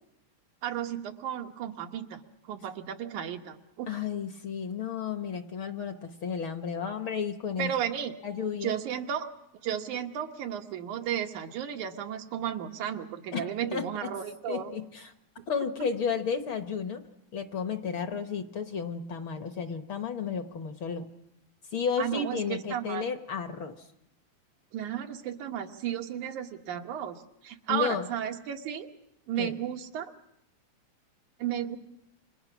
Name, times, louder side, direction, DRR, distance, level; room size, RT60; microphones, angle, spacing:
voice 1, 0.6-4.0 7.6-8.2 8.6-9.3 9.6-14.7 22.0-23.1 24.7-28.9 29.3-30.1 31.4-31.8, right 9 dB, 90° right, 5 dB, 2.9 m, -34 dB
voice 2, 3.9-7.7 8.2-8.8 13.3-14.1 14.5-15.1 15.5-17.0 17.3-21.1 21.7-23.9 27.7-28.1 29.4-29.5, left 6 dB, 55° left, 7 dB, 1.5 m, -32 dB
29.5 x 26.5 x 6.1 m, 0.80 s
omnidirectional pair, 3.3 m